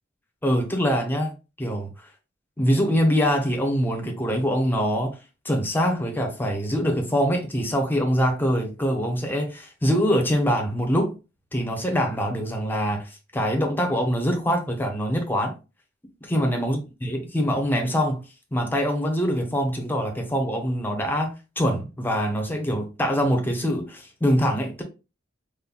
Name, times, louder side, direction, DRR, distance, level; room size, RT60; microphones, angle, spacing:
voice 1, 0.4-1.9 2.6-5.2 5.4-11.1 11.5-15.5 16.2-18.2 18.5-24.8, equal, 10° left, 0.7 m, -24 dB
5.4 x 2.2 x 2.2 m
head